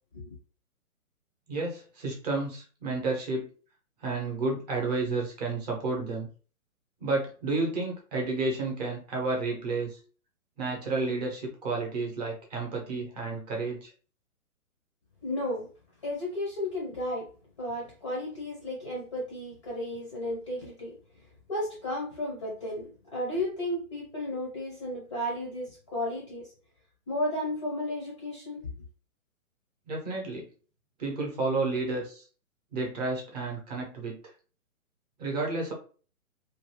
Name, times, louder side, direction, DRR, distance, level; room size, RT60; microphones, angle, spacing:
voice 1, 1.5-3.5 4.0-6.3 7.0-10.0 10.6-13.9 29.9-30.5 31.0-32.2 32.7-34.2 35.2-35.7, right 3 dB, 30° right, -1 dB, 0.8 m, -31 dB
voice 2, 15.2-15.7 16.0-17.3 17.6-20.9 21.5-26.5 27.1-28.7, left 1 dB, 20° left, -3 dB, 0.5 m, -33 dB
2.6 x 2.3 x 3.0 m, 0.38 s
hypercardioid pair, 150°, 43 cm